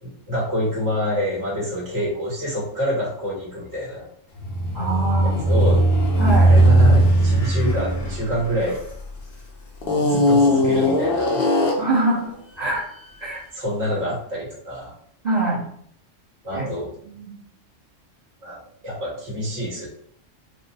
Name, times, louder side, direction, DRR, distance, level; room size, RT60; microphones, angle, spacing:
voice 1, 0.0-4.1 5.2-5.8 6.4-8.8 10.0-11.7 13.5-14.9 16.4-16.9 18.4-19.9, equal, 60° right, -5 dB, 1.9 m, -27 dB
sound 1, 4.4-9.2 9.8-12.0, right 1 dB, 55° left, 0.8 m, -18 dB
voice 2, 4.7-5.3 6.2-6.5 11.8-12.2 12.6-12.8 13.2-13.4 15.2-15.6 16.5-16.6 17.0-17.3, right 2 dB, 35° right, -7 dB, 1.1 m, -23 dB
4.3 x 2.2 x 2.7 m, 0.63 s
omnidirectional pair, 1.3 m